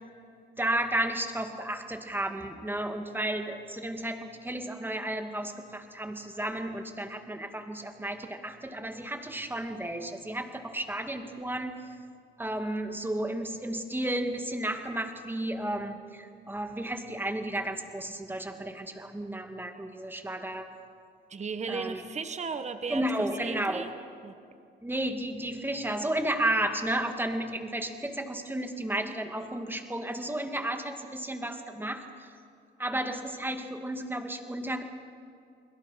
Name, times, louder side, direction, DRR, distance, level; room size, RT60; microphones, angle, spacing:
voice 1, 0.6-11.8 12.4-20.7 21.7-22.0 22.9-23.8 24.8-32.3 32.8-34.8, right 1 dB, 10° right, 5 dB, 2.3 m, -33 dB
voice 2, 21.3-23.9 24.2-24.3, right 5 dB, 35° right, 8 dB, 1.4 m, -36 dB
29.5 x 21.5 x 5.8 m, 2.4 s
cardioid pair, 90°, 20 cm